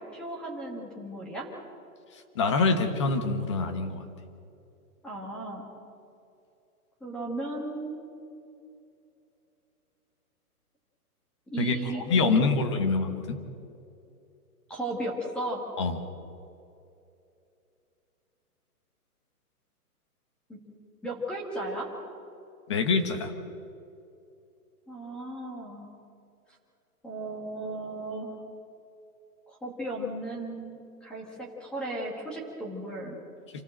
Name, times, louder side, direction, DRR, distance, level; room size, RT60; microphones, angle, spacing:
voice 1, 0.0-1.5 5.0-5.7 7.0-8.0 11.5-12.4 14.7-15.6 20.5-20.6 21.0-21.9 24.9-25.9 27.0-28.4 29.5-33.2, right 1 dB, ahead, -2 dB, 1.4 m, -35 dB
voice 2, 2.3-4.0 11.6-13.4 15.8-15.9 22.7-23.3, left 4 dB, 20° left, 8 dB, 1.1 m, -25 dB
27.5 x 14.0 x 7.7 m, 2.7 s
hypercardioid pair, 180°, 46 cm